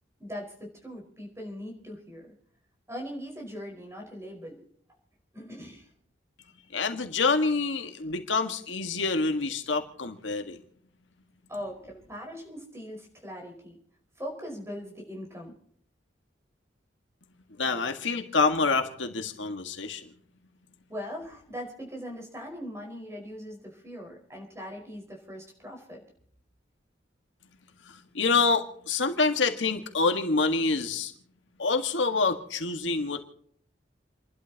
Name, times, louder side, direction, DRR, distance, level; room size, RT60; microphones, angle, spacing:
voice 1, 0.2-2.3 2.9-4.6 5.3-5.9 11.5-13.7 14.2-15.5 20.9-26.0, equal, 15° right, 0 dB, 5.0 m, -40 dB
voice 2, 6.7-10.6 17.6-20.1 27.8-31.1 31.6-33.3, left 4 dB, 80° left, 6 dB, 1.7 m, -27 dB
29.5 x 12.0 x 2.9 m, 0.64 s
head